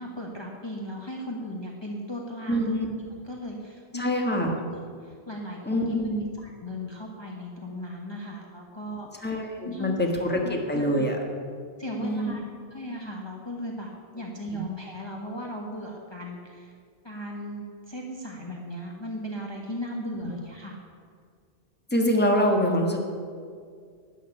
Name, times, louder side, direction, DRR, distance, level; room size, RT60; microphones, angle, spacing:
voice 1, 0.0-2.7 3.2-4.2 5.0-6.0 6.4-9.4 9.6-9.9 10.4-11.0 11.8-12.4 12.7-16.7 17.0-20.8, equal, 25° left, -2 dB, 1.3 m, -36 dB
voice 2, 2.5-2.9 3.9-4.5 5.7-6.3 9.2-11.2 12.0-12.4 21.9-23.0, equal, 10° left, 1 dB, 1.5 m, -25 dB
13.0 x 6.5 x 9.9 m, 2.1 s
omnidirectional pair, 1.1 m